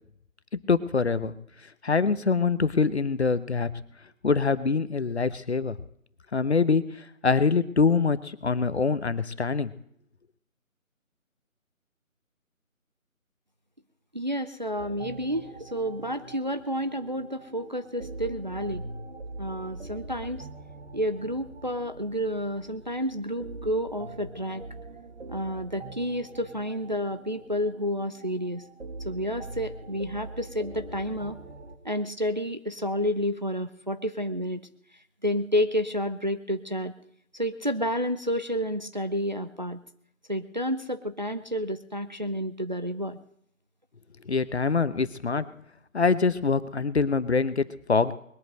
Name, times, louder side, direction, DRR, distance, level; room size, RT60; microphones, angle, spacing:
voice 1, 0.7-1.3 1.8-3.7 4.2-5.8 6.3-6.9 7.2-9.7 44.3-45.4 45.9-48.1, left 4 dB, 50° left, 14 dB, 1.0 m, -24 dB
voice 2, 14.1-18.8 19.4-20.5 20.9-24.6 25.3-28.6 29.0-31.4 31.8-34.6 35.2-36.9 37.3-39.8 40.3-43.2, equal, 35° right, 9 dB, 0.6 m, -30 dB
sound 1, 14.8-31.8, right 2 dB, 50° right, 2.1 m, -43 dB
21.0 x 8.4 x 7.7 m, 0.69 s
figure-of-eight pair, 165°, 42 cm